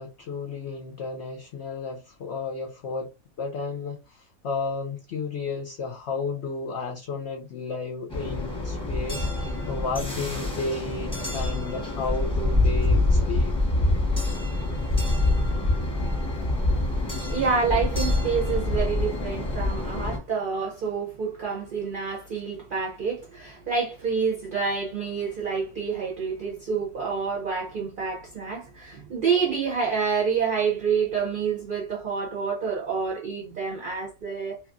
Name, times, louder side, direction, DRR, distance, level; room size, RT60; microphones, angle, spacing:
voice 1, 0.0-3.1 3.4-13.6, left 4 dB, 65° left, 0.7 m, -33 dB
sound 1, 8.1-20.2, left 2 dB, 5° left, 0.8 m, -25 dB
voice 2, 17.3-34.6, right 5 dB, 50° right, 0.6 m, -28 dB
2.8 x 2.4 x 2.4 m
omnidirectional pair, 1.5 m